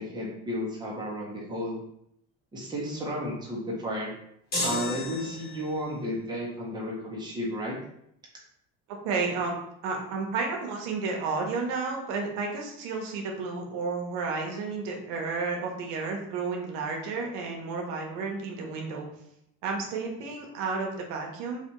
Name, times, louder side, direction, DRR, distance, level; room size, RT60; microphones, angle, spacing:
voice 1, 0.0-1.8 2.5-4.1 4.6-7.8, equal, 15° right, -4 dB, 0.9 m, -33 dB
sound 1, 4.5-5.8, left 2 dB, 30° left, 1.3 m, -32 dB
voice 2, 8.9-19.1 19.6-21.6, right 4 dB, 90° right, 1 dB, 0.8 m, -32 dB
3.3 x 2.6 x 2.9 m, 0.74 s
cardioid pair, 130°, 30 cm